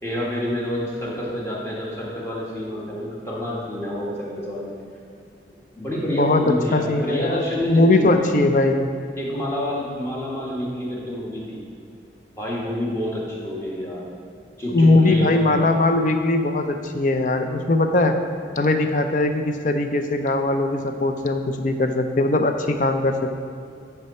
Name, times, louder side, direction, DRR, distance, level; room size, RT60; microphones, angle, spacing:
voice 1, 0.0-4.7 5.8-8.3 9.2-11.6 12.4-14.1 14.6-15.4, left 1 dB, 15° left, -5 dB, 1.3 m, -28 dB
voice 2, 6.7-8.9 14.7-18.1 18.6-23.3, left 2 dB, 45° left, 6 dB, 0.5 m, -20 dB
9.7 x 4.7 x 4.2 m, 2.4 s
head